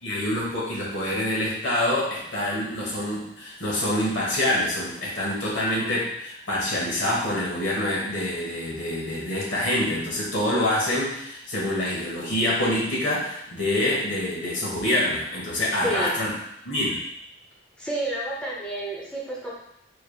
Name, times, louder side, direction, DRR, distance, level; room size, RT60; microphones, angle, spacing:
voice 1, 0.0-16.3 16.6-17.0, left 1 dB, 70° left, -5 dB, 1.3 m, -26 dB
voice 2, 15.8-16.2 17.8-19.5, right 1 dB, 5° left, -4 dB, 0.5 m, -30 dB
4.4 x 3.2 x 2.3 m, 0.77 s
head